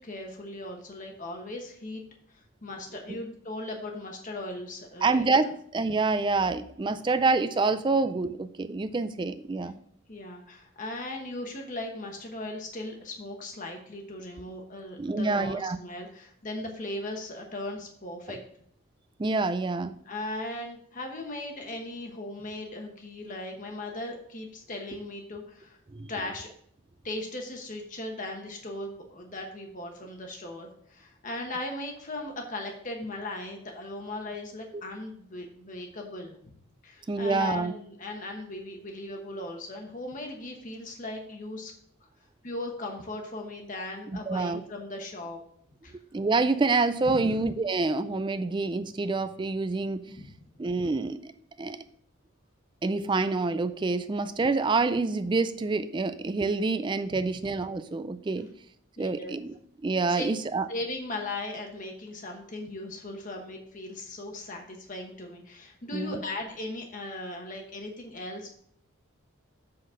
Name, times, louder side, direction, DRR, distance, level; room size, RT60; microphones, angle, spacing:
voice 1, 0.0-2.0 2.6-5.2 10.1-18.4 20.0-25.8 26.1-26.5 27.0-36.3 36.8-41.7 42.4-45.4 45.8-46.0 47.0-47.3 50.1-50.3 57.1-57.3 59.0-59.4 60.1-60.2 60.7-68.5, left 2 dB, 35° left, 2 dB, 1.1 m, -38 dB
voice 2, 5.0-9.8 15.0-15.8 19.2-20.0 25.9-26.1 34.7-34.8 37.1-37.7 44.1-44.6 46.1-50.2 50.6-51.3 51.6-51.8 52.8-58.5 59.0-59.5 59.8-60.7 65.9-66.2, right 3 dB, 20° right, 11 dB, 0.3 m, -27 dB
7.6 x 4.1 x 6.2 m, 0.64 s
head